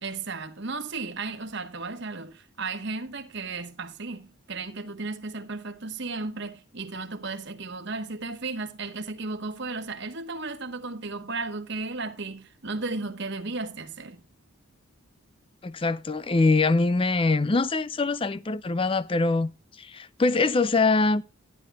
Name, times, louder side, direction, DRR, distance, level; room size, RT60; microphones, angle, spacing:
voice 1, 0.0-14.2, right 3 dB, 50° right, 1.2 m, -34 dB
voice 2, 15.6-19.5 19.8-21.2, left 3 dB, 25° left, 0.4 m, -23 dB
13.5 x 11.5 x 2.3 m
head